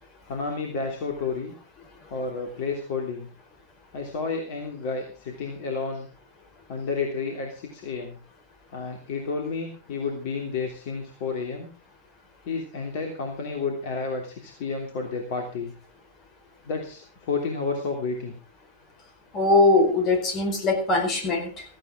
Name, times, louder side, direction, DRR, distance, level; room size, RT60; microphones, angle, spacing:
voice 1, 0.3-1.5 2.1-3.3 3.9-6.1 6.7-8.2 8.7-11.7 12.4-15.7 16.6-18.3, left 4 dB, 50° left, 2 dB, 3.1 m, -31 dB
voice 2, 19.3-21.6, left 2 dB, 35° left, 5 dB, 4.8 m, -21 dB
16.5 x 15.0 x 3.7 m, 0.36 s
figure-of-eight pair, 90°, 0 cm